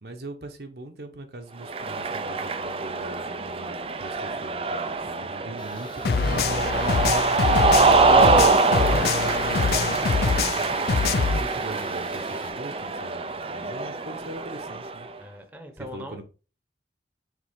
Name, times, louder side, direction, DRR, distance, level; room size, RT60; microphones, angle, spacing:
voice 1, 0.0-15.1 15.9-16.2, right 2 dB, 65° right, 0.9 m, -41 dB
Cheering, 1.6-15.1, right 3 dB, 30° right, 0.4 m, -24 dB
Tools, 5.6-12.5, left 4 dB, 25° left, 1.2 m, -49 dB
sound 1, 6.0-11.4, left 5 dB, 60° left, 0.4 m, -25 dB
voice 2, 15.2-16.2, equal, 10° right, 1.0 m, -41 dB
6.7 x 4.1 x 3.6 m
head